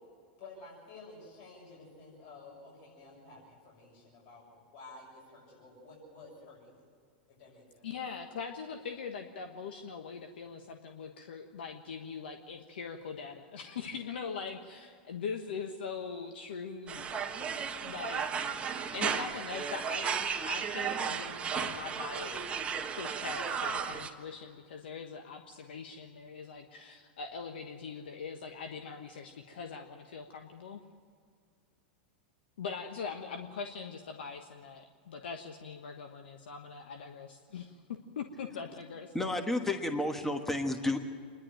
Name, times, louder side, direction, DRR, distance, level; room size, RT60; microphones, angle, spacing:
voice 1, 0.4-4.5 4.7-6.9 7.3-7.9, left 3 dB, 55° left, -4 dB, 6.8 m, -52 dB
voice 2, 7.8-17.5 17.8-18.7 18.9-20.1 20.4-22.6 22.9-30.8 32.6-39.1, left 5 dB, 80° left, 4 dB, 1.3 m, -42 dB
sound 1, 16.9-24.1, right 6 dB, 20° right, 1.5 m, -34 dB
voice 3, 39.1-41.0, left 2 dB, 5° left, 5 dB, 1.4 m, -31 dB
26.5 x 11.5 x 9.0 m, 2.1 s
hypercardioid pair, 115°, 5 cm